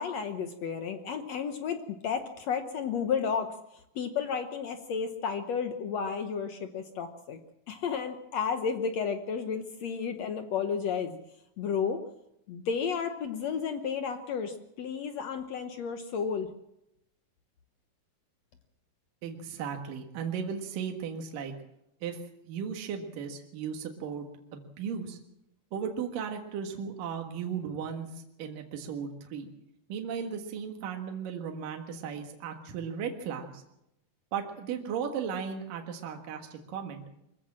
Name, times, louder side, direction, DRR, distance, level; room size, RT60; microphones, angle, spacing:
voice 1, 0.0-3.5 3.9-7.4 7.7-11.2 11.6-12.0 12.5-16.5, left 6 dB, 70° left, 8 dB, 1.7 m, -32 dB
voice 2, 19.2-21.5 22.0-22.2 22.4-25.2 25.7-29.5 29.9-33.6 34.3-37.0, right 7 dB, 65° right, 3 dB, 3.1 m, -36 dB
24.0 x 15.0 x 7.5 m, 0.84 s
omnidirectional pair, 4.3 m